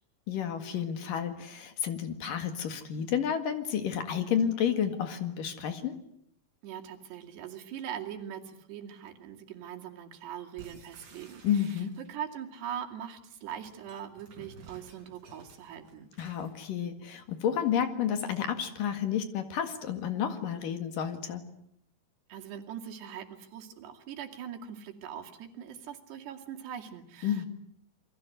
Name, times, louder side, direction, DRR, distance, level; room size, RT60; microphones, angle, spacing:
voice 1, 0.3-6.0 11.4-11.9 16.2-21.5 27.2-27.5, left 8 dB, 60° left, 9 dB, 3.3 m, -31 dB
voice 2, 6.6-16.1 22.3-27.5, right 9 dB, 90° right, 3 dB, 4.6 m, -42 dB
sound 1, 10.6-12.3 13.3-16.6, right 3 dB, 50° right, 6.5 m, -54 dB
28.5 x 22.5 x 7.9 m, 0.73 s
omnidirectional pair, 4.7 m